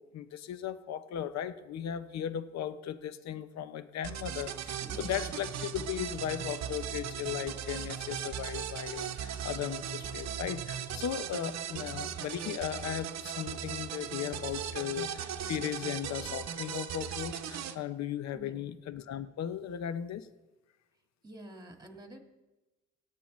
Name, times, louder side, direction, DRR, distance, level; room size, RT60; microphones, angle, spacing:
voice 1, 0.1-20.3, left 10 dB, 60° left, 13 dB, 0.7 m, -37 dB
sound 1, 4.0-17.8, right 9 dB, 60° right, 0.8 m, -38 dB
voice 2, 4.7-5.4 11.7-12.1 18.3-18.7 21.2-22.2, right 1 dB, 15° right, 4 dB, 1.8 m, -49 dB
17.0 x 8.8 x 3.1 m, 1.1 s
cardioid pair, 90°, 30 cm